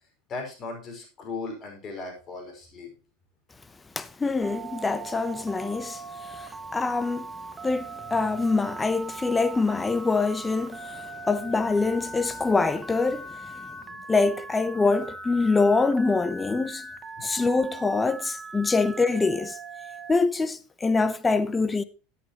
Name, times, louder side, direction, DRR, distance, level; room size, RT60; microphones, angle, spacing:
voice 1, 0.3-2.9 17.2-17.3, left 3 dB, 35° left, 5.1 m, -37 dB
voice 2, 4.0-7.3 7.6-13.3 14.1-16.9 17.2-19.6 20.1-21.8, left 3 dB, 15° left, 0.7 m, -25 dB
Telephone, 4.4-20.1, right 3 dB, 20° right, 1.4 m, -40 dB
14.0 x 8.6 x 2.9 m
supercardioid pair, 120°, 0 cm